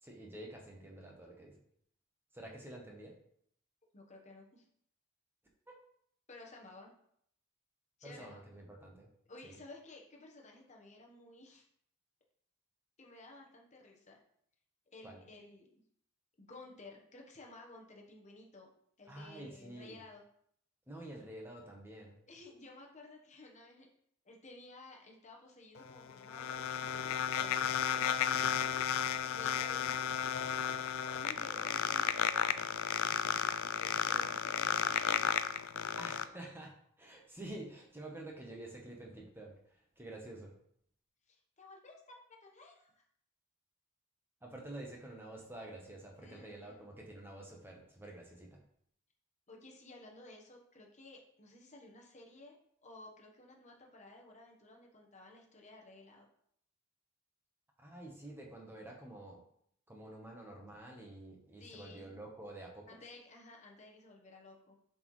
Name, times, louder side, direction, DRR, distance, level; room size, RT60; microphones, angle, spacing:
voice 1, 0.0-1.6 2.3-3.2 5.7-5.8 8.0-9.1 9.4-9.6 15.0-15.2 19.1-20.0 20.9-22.2 35.9-40.6 44.4-48.6 57.8-59.4 59.9-63.0, right 1 dB, 10° right, 0 dB, 1.0 m, -49 dB
voice 2, 3.9-4.6 6.3-6.9 8.0-8.4 9.3-11.7 13.0-14.2 14.9-15.8 16.4-18.7 19.0-20.2 22.3-23.9 24.2-28.6 29.2-30.1 31.1-32.2 33.6-35.4 41.3-43.0 46.2-46.8 49.5-52.6 52.8-56.3 61.6-62.1 62.9-64.7, left 2 dB, 30° left, 0 dB, 1.1 m, -54 dB
sound 1, 25.8-36.2, left 9 dB, 70° left, 0.4 m, -33 dB
7.3 x 4.3 x 3.2 m, 0.68 s
head